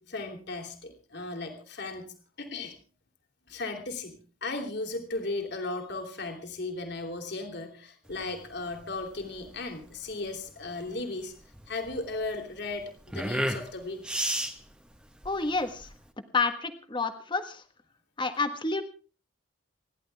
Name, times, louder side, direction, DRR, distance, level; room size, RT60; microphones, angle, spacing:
voice 1, 0.0-2.7 3.5-11.3 11.7-14.0, left 2 dB, 55° left, 4 dB, 3.4 m, -36 dB
sound 1, 8.1-16.1, right 1 dB, 5° right, 1.5 m, -35 dB
voice 2, 15.2-15.9 16.3-17.6 18.2-18.8, left 3 dB, 25° left, 8 dB, 1.5 m, -29 dB
29.0 x 11.5 x 3.5 m, 0.37 s
head